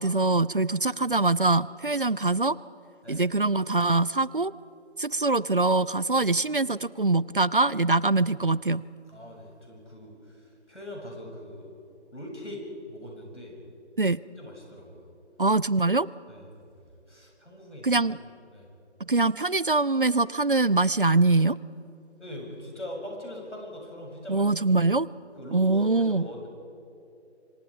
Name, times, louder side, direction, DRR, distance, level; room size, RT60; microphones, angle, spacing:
voice 1, 0.0-2.6 3.1-4.5 5.0-8.8 14.0-14.2 15.4-16.1 17.8-18.2 19.0-21.6 24.3-25.1 25.5-26.3, right 3 dB, 50° right, 20 dB, 0.4 m, -23 dB
voice 2, 9.1-11.7 12.1-12.6 12.9-13.6 14.4-15.1 16.3-18.0 18.5-18.7 22.2-24.5 25.3-26.5, left 1 dB, 90° left, -1 dB, 7.8 m, -41 dB
26.5 x 25.5 x 5.1 m, 2.8 s
figure-of-eight pair, 165°, 34 cm